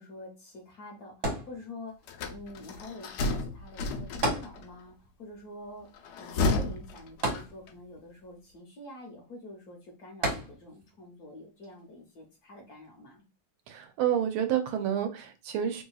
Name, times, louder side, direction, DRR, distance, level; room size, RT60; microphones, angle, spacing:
voice 1, 0.0-5.9 6.2-13.2, left 1 dB, 60° left, 0 dB, 1.1 m, -47 dB
sound 1, 1.2-2.1 4.2-5.1 5.4-5.5 7.2-8.1 10.2-10.9 11.6-11.7, right 1 dB, 70° right, 2.0 m, -32 dB
sound 2, 2.1-4.6 6.0-7.8, left 2 dB, 80° left, 0.9 m, -32 dB
voice 2, 13.7-15.8, right 9 dB, 90° right, 6 dB, 1.5 m, -29 dB
3.3 x 2.8 x 2.3 m, 0.30 s
omnidirectional pair, 2.3 m